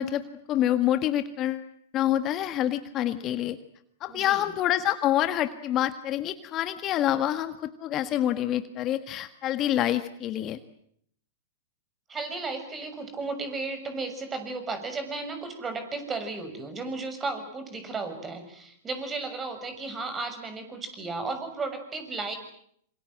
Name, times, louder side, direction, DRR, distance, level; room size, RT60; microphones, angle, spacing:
voice 1, 0.0-1.7 1.9-3.6 4.0-10.6, left 12 dB, 35° left, 10 dB, 1.6 m, -27 dB
voice 2, 4.1-4.4 12.1-22.4, right 3 dB, 20° right, 8 dB, 6.7 m, -34 dB
26.5 x 25.5 x 7.7 m, 0.67 s
hypercardioid pair, 110°, 0 cm